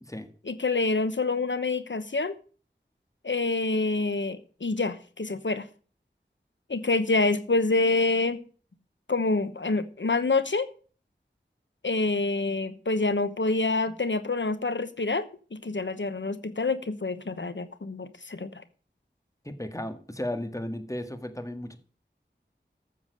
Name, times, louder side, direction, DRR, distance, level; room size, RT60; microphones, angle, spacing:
voice 1, 0.5-2.4 3.2-5.7 6.7-8.4 9.1-10.7 11.8-18.6, left 3 dB, 75° left, 1.1 m, -27 dB
voice 2, 19.4-21.8, left 1 dB, 15° left, 1.8 m, -35 dB
13.0 x 7.0 x 6.5 m
wide cardioid pair, 40°, 19 cm